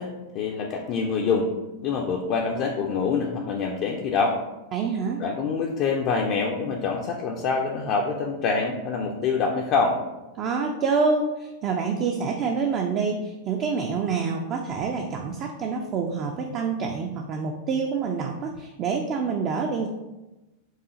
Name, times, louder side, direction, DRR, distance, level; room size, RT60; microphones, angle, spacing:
voice 1, 0.0-1.5 1.8-4.4 5.2-10.0, left 5 dB, 40° left, 0 dB, 0.4 m, -25 dB
voice 2, 4.7-5.2 10.4-19.9, right 5 dB, 35° right, 2 dB, 0.3 m, -27 dB
4.7 x 2.4 x 2.7 m, 1.0 s
figure-of-eight pair, 90°, 0 cm